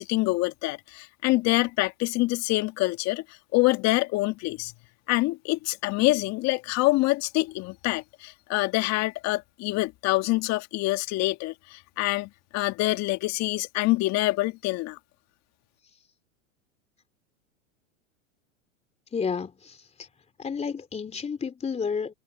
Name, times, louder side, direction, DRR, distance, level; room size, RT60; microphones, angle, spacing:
voice 1, 0.0-3.2 3.5-4.7 5.1-15.0, left 21 dB, 40° left, 2.0 m, -26 dB
voice 2, 19.1-20.1 20.4-22.1, left 6 dB, 15° left, 3.7 m, -31 dB
hypercardioid pair, 115°, 39 cm